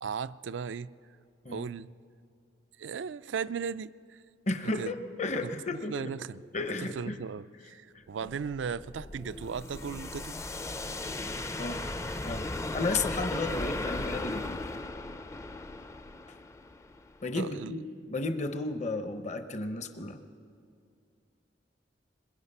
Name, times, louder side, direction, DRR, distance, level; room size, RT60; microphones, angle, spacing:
voice 1, 0.0-0.9 1.5-1.9 2.8-4.2 4.6-4.9 5.4-6.4 6.8-10.4 17.3-17.8, right 6 dB, 85° right, 15 dB, 0.4 m, -37 dB
voice 2, 4.5-6.1 6.5-7.2 7.9-8.0 11.6-11.8 12.2-12.5 12.7-14.6 17.2-17.8 18.1-20.2, left 3 dB, 40° left, 8 dB, 0.8 m, -33 dB
sound 1, 8.3-17.2, left 2 dB, 15° left, 0.5 m, -37 dB
22.0 x 21.0 x 5.5 m, 2.4 s
head